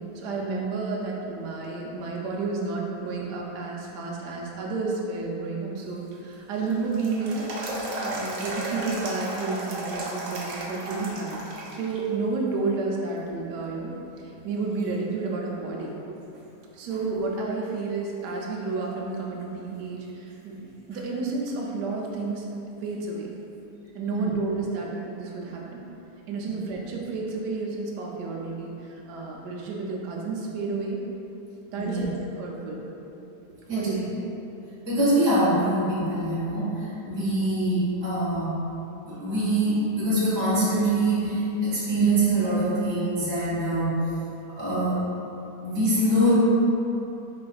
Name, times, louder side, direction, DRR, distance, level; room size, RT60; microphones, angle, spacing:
voice 1, 0.0-7.5 7.8-11.4 11.7-15.9 16.7-20.6 20.9-22.4 22.8-23.3 23.9-25.8 26.3-31.0 31.7-32.8 33.7-34.0, right 3 dB, 80° right, -2 dB, 1.2 m, -31 dB
sound 1, 5.9-12.0 12.4-12.5 13.2-13.7 14.2-14.3 14.8-16.0 16.3-16.4 19.8-19.9 22.9-23.0, right 1 dB, 65° right, 1.0 m, -35 dB
voice 2, 33.7-34.0 34.8-38.5 39.0-43.9 44.6-45.1 45.6-46.3, right 1 dB, 20° right, -11 dB, 1.1 m, -24 dB
4.3 x 4.1 x 2.3 m, 3.0 s
omnidirectional pair, 1.8 m